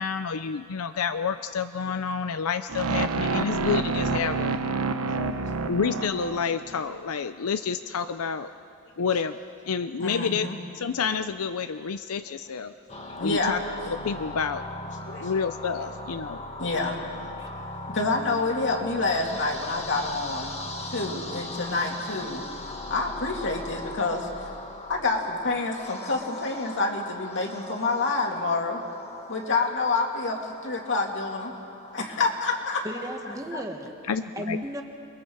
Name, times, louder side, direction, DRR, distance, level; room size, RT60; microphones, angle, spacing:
voice 1, 0.0-4.5 5.7-8.5 9.0-9.4 9.7-10.5 10.7-12.7 13.2-13.6 14.0-14.6 15.2-16.4 34.1-34.6, left 6 dB, 75° left, 10 dB, 0.6 m, -29 dB
sound 1, 2.7-6.8, right 4 dB, 70° right, 0.9 m, -28 dB
voice 2, 5.1-5.7 10.0-10.6 12.6-12.7 13.2-13.6 15.1-15.3 16.6-17.0 17.9-20.5 20.8-22.4 22.9-24.5 24.9-28.8 29.3-31.5 31.9-32.8 33.2-33.6, left 3 dB, 60° left, 1 dB, 2.6 m, -28 dB
sound 2, 12.9-32.7, left 2 dB, 30° left, 1.6 m, -39 dB
voice 3, 32.8-33.9 34.3-34.8, equal, 15° right, 3 dB, 1.6 m, -34 dB
29.0 x 22.0 x 4.7 m, 2.5 s
head